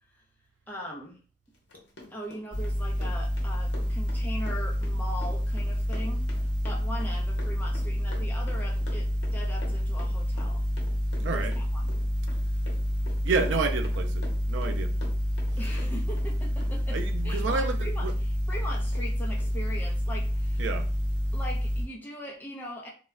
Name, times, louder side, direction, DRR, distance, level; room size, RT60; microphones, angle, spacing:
voice 1, 0.7-1.2 2.1-10.6 11.3-12.0 15.6-18.1 18.5-20.6 21.3-22.9, equal, 10° left, 0.5 m, -40 dB
Run, 1.5-16.4 16.6-18.2 18.5-18.6 18.9-19.1 19.4-19.5, left 2 dB, 70° left, 0.8 m, -47 dB
sound 1, 2.5-21.8, equal, 45° right, 0.7 m, -28 dB
voice 2, 11.2-11.5 13.2-14.9 15.6-15.7 16.9-18.1 20.6-20.9, right 4 dB, 75° right, 0.4 m, -30 dB
2.2 x 2.1 x 3.4 m
head